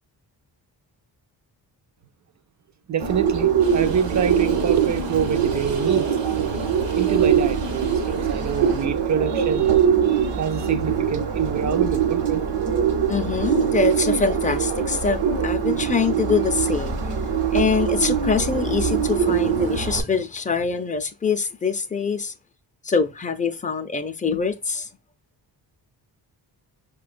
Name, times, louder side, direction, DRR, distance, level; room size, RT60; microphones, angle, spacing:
voice 1, 2.9-6.2 7.0-12.4, right 8 dB, 45° right, 0.4 m, -26 dB
Bird, 3.0-20.0, right 7 dB, 65° right, 0.8 m, -22 dB
sound 1, 3.6-8.9, right 5 dB, 90° right, 1.1 m, -40 dB
voice 2, 13.1-17.0 17.5-22.3 22.8-24.9, left 5 dB, 20° left, 0.4 m, -24 dB
5.5 x 2.2 x 2.4 m
wide cardioid pair, 95°, 43 cm